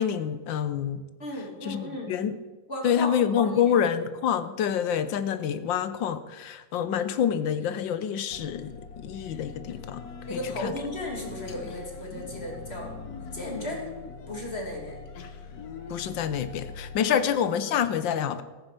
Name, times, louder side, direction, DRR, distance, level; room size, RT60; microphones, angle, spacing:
voice 1, 0.0-1.0 1.6-2.4 2.8-10.0 10.3-10.7 15.9-18.4, left 8 dB, 80° left, 13 dB, 1.5 m, -27 dB
voice 2, 1.2-2.1 2.7-3.6 10.3-12.9 13.3-13.9 14.3-15.0 17.1-17.2, left 1 dB, 35° left, 1 dB, 2.9 m, -35 dB
sound 1, 8.3-17.0, left 5 dB, 60° left, 1.4 m, -42 dB
14.0 x 9.8 x 6.7 m, 1.3 s
omnidirectional pair, 2.0 m